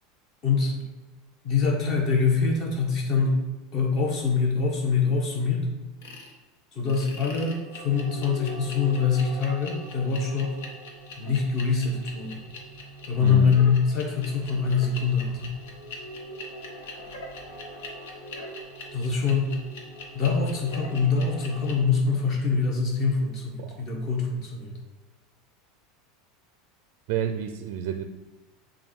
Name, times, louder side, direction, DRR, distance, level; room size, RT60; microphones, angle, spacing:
voice 1, 0.4-0.8 1.4-3.4 3.7-5.7 6.7-10.6 11.2-12.4 13.1-15.5 18.9-19.6 20.1-24.7, left 5 dB, 35° left, -1 dB, 1.4 m, -24 dB
sound 1, 6.0-6.3 6.9-21.7, left 1 dB, 80° left, 1.2 m, -41 dB
voice 2, 13.2-13.6 23.6-23.8 27.1-28.0, right 8 dB, 55° right, 8 dB, 0.4 m, -29 dB
7.1 x 2.7 x 5.3 m, 1.2 s
supercardioid pair, 165°, 0 cm